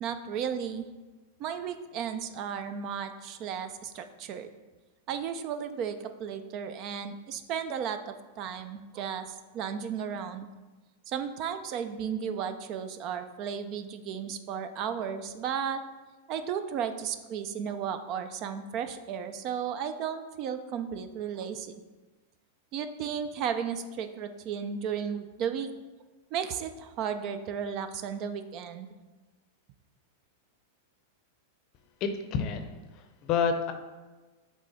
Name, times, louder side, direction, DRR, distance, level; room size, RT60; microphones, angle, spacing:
voice 1, 0.0-0.9 1.4-4.5 5.1-9.3 9.5-10.5 11.1-15.8 16.3-21.7 22.7-25.7 26.3-28.9, right 7 dB, 40° right, 10 dB, 0.4 m, -34 dB
voice 2, 32.0-33.7, left 6 dB, 40° left, 7 dB, 0.6 m, -29 dB
8.0 x 3.2 x 4.1 m, 1.2 s
supercardioid pair, 145°, 0 cm